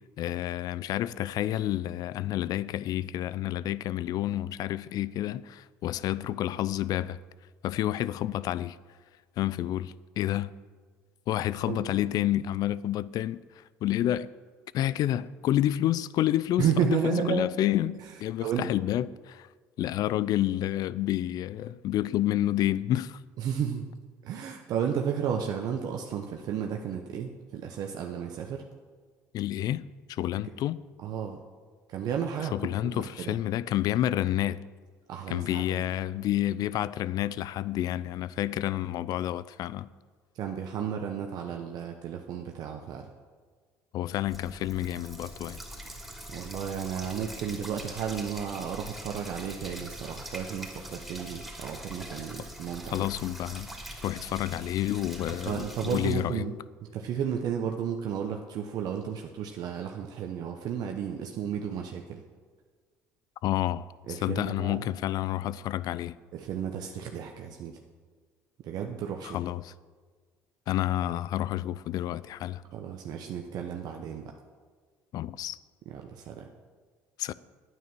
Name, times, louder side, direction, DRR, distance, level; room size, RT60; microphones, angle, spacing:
voice 1, 0.2-7.2 7.6-8.8 9.4-10.5 11.3-13.4 13.8-14.3 14.7-19.5 19.8-23.2 29.3-30.8 32.5-34.7 35.3-39.9 43.9-45.6 52.9-53.7 54.0-56.4 63.4-66.2 69.2-69.7 70.7-72.6 75.1-75.6 77.2-77.3, left 13 dB, 60° left, 0.4 m, -29 dB
voice 2, 16.6-17.4 18.4-18.7 23.4-23.9 24.2-28.6 31.0-31.4 31.9-32.5 32.9-33.4 35.1-35.8 40.3-43.1 46.3-53.1 55.5-56.6 56.9-62.2 64.1-64.9 66.3-67.7 68.6-69.4 72.7-74.3 75.9-76.5, right 8 dB, 65° right, 0.9 m, -33 dB
sound 1, 44.3-56.1, right 1 dB, ahead, 2.8 m, -43 dB
9.4 x 9.3 x 6.1 m
hypercardioid pair, 70°, 7 cm